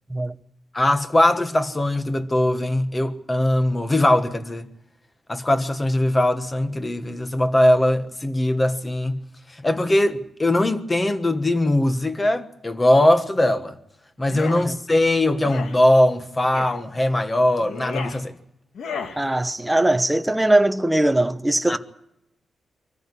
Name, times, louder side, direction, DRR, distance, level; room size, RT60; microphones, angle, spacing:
voice 1, 0.7-4.7 5.3-9.2 9.5-13.8 14.2-18.4 21.7-21.8, left 1 dB, 15° left, 1.3 m, -20 dB
sound 1, 14.2-14.6 15.4-15.8 16.5-16.8 17.6-18.2 18.7-19.2, left 5 dB, 80° left, 2.3 m, -33 dB
voice 2, 19.2-21.8, right 1 dB, 5° right, 0.8 m, -20 dB
24.5 x 14.5 x 9.7 m
wide cardioid pair, 175°, 0 cm